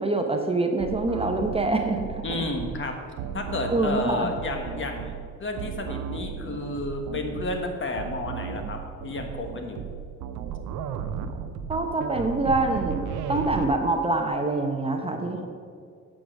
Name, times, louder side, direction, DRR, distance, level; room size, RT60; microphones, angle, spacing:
voice 1, 0.0-2.2 3.7-4.3 11.7-15.5, right 2 dB, 20° right, 4 dB, 0.7 m, -25 dB
sound 1, 0.8-13.7, right 8 dB, 90° right, 0.6 m, -35 dB
voice 2, 2.2-3.0 3.3-9.8 15.1-15.5, left 2 dB, 40° left, 4 dB, 1.3 m, -31 dB
8.5 x 5.0 x 6.3 m, 2.1 s
cardioid pair, 90°, 30 cm